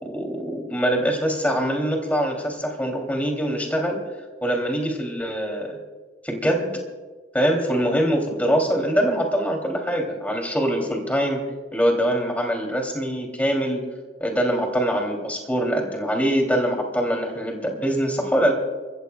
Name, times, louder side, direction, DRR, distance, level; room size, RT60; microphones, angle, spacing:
voice 1, 0.0-4.0 4.4-5.8 6.3-6.7 7.3-11.4 11.7-13.8 14.2-18.5, equal, 10° left, 1 dB, 2.7 m, -23 dB
29.5 x 15.0 x 2.2 m, 1.3 s
head